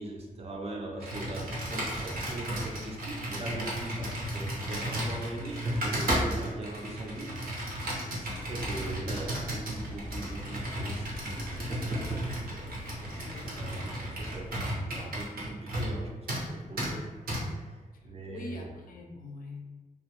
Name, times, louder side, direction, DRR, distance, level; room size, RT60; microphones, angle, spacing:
voice 1, 0.0-7.4 7.6-8.0 8.5-17.0 17.4-17.8 18.0-18.7, right 2 dB, 40° right, 0 dB, 0.4 m, -41 dB
Computer keyboard, 1.0-16.0 16.3-16.5 16.8-16.9 17.3-17.4, right 1 dB, 80° right, 0.7 m, -34 dB
voice 2, 7.9-8.3 13.1-14.0 17.9-19.7, left 3 dB, 70° left, 2 dB, 0.4 m, -45 dB
sound 1, 8.3-14.5, left 1 dB, 15° left, 0.6 m, -43 dB
2.4 x 2.0 x 2.9 m, 1.3 s
wide cardioid pair, 135°, 15 cm